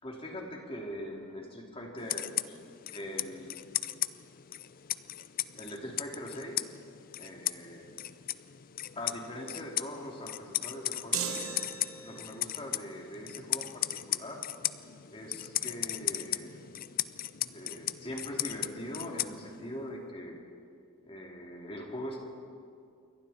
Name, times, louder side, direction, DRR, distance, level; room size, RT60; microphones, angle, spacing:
voice 1, 0.0-3.5 5.6-6.6 7.2-7.9 8.9-11.4 12.0-14.5 15.1-16.5 17.5-20.4 21.0-22.2, equal, 25° left, 0 dB, 3.1 m, -42 dB
sound 1, 2.0-19.8, left 13 dB, 40° left, 0.5 m, -37 dB
sound 2, 11.1-12.4, right 6 dB, 75° right, 2.2 m, -37 dB
28.0 x 23.5 x 4.4 m, 2.3 s
head